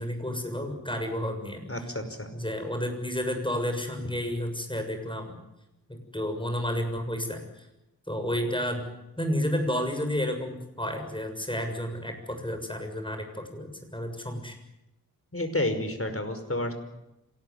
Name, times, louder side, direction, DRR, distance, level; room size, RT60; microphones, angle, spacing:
voice 1, 0.0-1.9 2.3-5.4 5.9-7.4 8.1-8.9 9.2-14.6, equal, 15° left, 5 dB, 7.1 m, -31 dB
voice 2, 1.7-2.3 15.3-16.7, left 1 dB, 40° left, 7 dB, 5.3 m, -30 dB
26.5 x 19.0 x 9.6 m, 0.93 s
wide cardioid pair, 50°, 36 cm